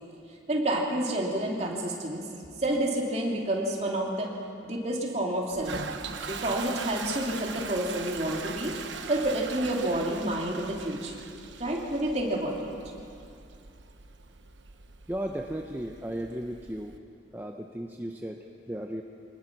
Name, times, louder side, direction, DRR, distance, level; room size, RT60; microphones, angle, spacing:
voice 1, 0.5-2.2 2.6-4.3 4.6-6.0 6.3-8.7 9.1-11.2 11.6-12.7, right 1 dB, 35° right, -1 dB, 2.9 m, -29 dB
Toilet flush, 5.5-17.0, right 5 dB, 85° right, 1.1 m, -41 dB
voice 2, 15.1-17.0 17.3-19.0, right 1 dB, 10° right, 2 dB, 0.7 m, -35 dB
25.0 x 19.5 x 6.1 m, 2.5 s
head